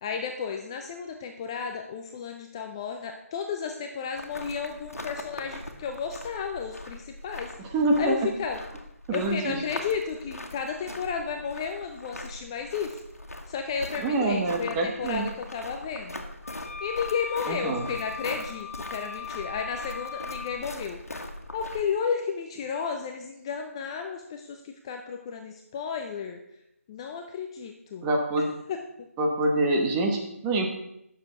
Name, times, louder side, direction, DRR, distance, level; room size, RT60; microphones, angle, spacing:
voice 1, 0.0-8.6 9.1-13.0 13.5-16.2 16.8-21.0 21.5-26.4 26.9-28.1 28.4-28.8, left 6 dB, 20° left, 5 dB, 0.5 m, -33 dB
sound 1, 4.1-21.8, left 1 dB, 80° left, 1.7 m, -41 dB
voice 2, 7.6-8.2 9.1-9.6 14.0-15.2 17.5-17.9 28.0-28.5 29.2-30.7, right 2 dB, 15° right, 1 dB, 1.2 m, -26 dB
sound 2, 16.4-20.6, left 6 dB, 65° left, 1.2 m, -39 dB
9.2 x 6.9 x 6.0 m, 0.80 s
figure-of-eight pair, 155°, 8 cm